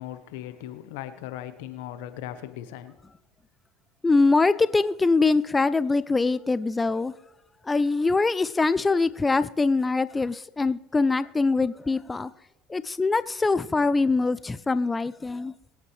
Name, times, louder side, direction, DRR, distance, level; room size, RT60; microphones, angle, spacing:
voice 1, 0.0-3.0, left 12 dB, 80° left, 1.1 m, -38 dB
voice 2, 4.0-7.1 7.6-12.3 12.7-15.5, left 3 dB, 20° left, 0.4 m, -23 dB
23.5 x 8.6 x 3.3 m
supercardioid pair, 85°, 0 cm